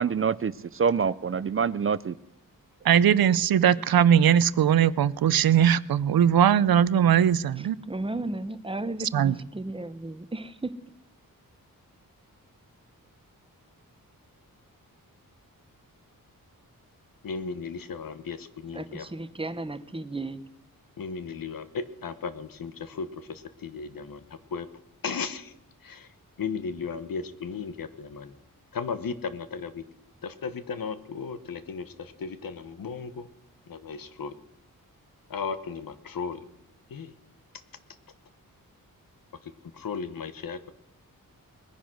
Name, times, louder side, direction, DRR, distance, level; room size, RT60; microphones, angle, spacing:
voice 1, 0.0-2.1, right 6 dB, 40° right, 0.5 m, -26 dB
voice 2, 2.8-7.8 9.1-9.3, right 9 dB, 90° right, 0.6 m, -20 dB
voice 3, 7.6-10.7 18.7-20.4, right 2 dB, 15° right, 0.9 m, -34 dB
voice 4, 17.2-19.0 21.0-24.2 24.5-24.7 25.0-25.5 25.8-26.1 26.4-28.3 28.7-29.8 30.2-33.3 33.7-34.3 35.3-36.4 36.9-37.1 39.7-40.6, left 5 dB, 70° left, 1.3 m, -35 dB
20.5 x 10.5 x 6.3 m
wide cardioid pair, 120°, 35 cm